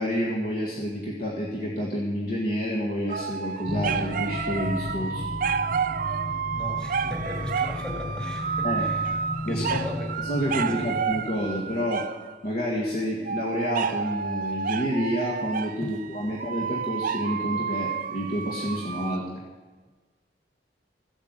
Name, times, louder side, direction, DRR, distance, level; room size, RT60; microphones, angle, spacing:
voice 1, 0.0-5.3 7.0-7.1 8.6-8.9 9.4-9.8 10.2-12.1 12.4-19.2, equal, 50° left, -2 dB, 1.6 m, -29 dB
sound 1, 3.1-12.4 13.3-19.2, right 6 dB, 50° right, 0.5 m, -30 dB
sound 2, 3.7-11.9, left 2 dB, 30° left, 0.5 m, -35 dB
voice 2, 6.5-9.1 9.5-10.1 10.8-10.9 15.8-16.0, equal, 5° left, -1 dB, 2.0 m, -37 dB
14.0 x 8.2 x 7.9 m, 1.4 s
head